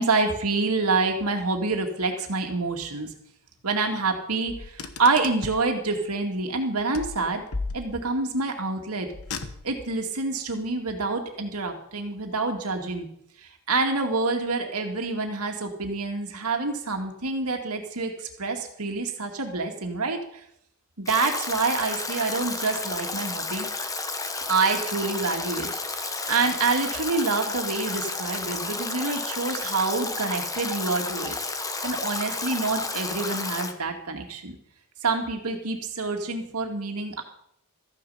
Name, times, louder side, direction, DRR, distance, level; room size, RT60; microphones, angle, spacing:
voice 1, 0.0-3.1 3.6-7.4 7.7-9.1 9.6-13.1 13.4-20.2 21.0-23.7 24.5-31.3 31.8-34.6 35.0-37.2, right 3 dB, 85° right, 4 dB, 2.2 m, -27 dB
Car, 4.5-5.7 6.9-8.3 9.1-9.9, left 3 dB, 70° left, 1.1 m, -36 dB
Stream / Drip / Trickle dribble, 21.1-33.7, left 3 dB, 15° left, 1.1 m, -32 dB
14.0 x 9.7 x 5.7 m, 0.72 s
head